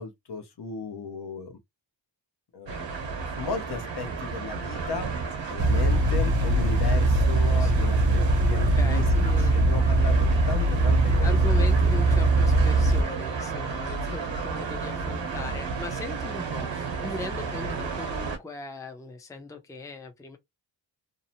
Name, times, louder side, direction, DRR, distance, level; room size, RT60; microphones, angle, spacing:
voice 1, 0.0-1.6 2.5-5.1 5.4-9.0 9.4-11.4, left 4 dB, 60° left, 0.8 m, -35 dB
sound 1, 2.7-18.4, right 5 dB, 70° right, 1.0 m, -33 dB
sound 2, 5.6-13.0, right 2 dB, 45° right, 0.5 m, -21 dB
voice 2, 7.6-8.0 8.4-9.7 11.2-20.4, left 2 dB, 5° left, 0.5 m, -39 dB
2.7 x 2.0 x 2.8 m
wide cardioid pair, 85°, 46 cm